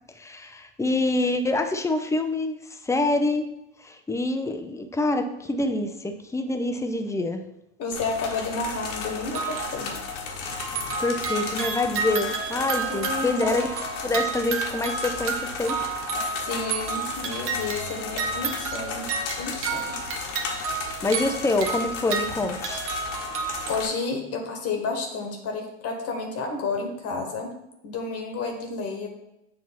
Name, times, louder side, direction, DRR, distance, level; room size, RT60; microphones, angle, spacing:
voice 1, 0.2-3.5 3.8-7.4 11.0-13.7 14.0-15.8 21.0-22.9, left 2 dB, 10° left, 6 dB, 0.5 m, -26 dB
voice 2, 7.8-9.9 12.9-13.4 16.5-20.0 20.8-21.0 23.7-27.6 27.8-29.1, left 4 dB, 40° left, 3 dB, 1.3 m, -31 dB
sound 1, 7.9-23.9, left 5 dB, 75° left, 1.3 m, -35 dB
sound 2, 9.3-10.2 10.5-24.0, right 5 dB, 35° right, 1.0 m, -31 dB
7.3 x 2.9 x 5.8 m, 0.88 s
hypercardioid pair, 95°, 36 cm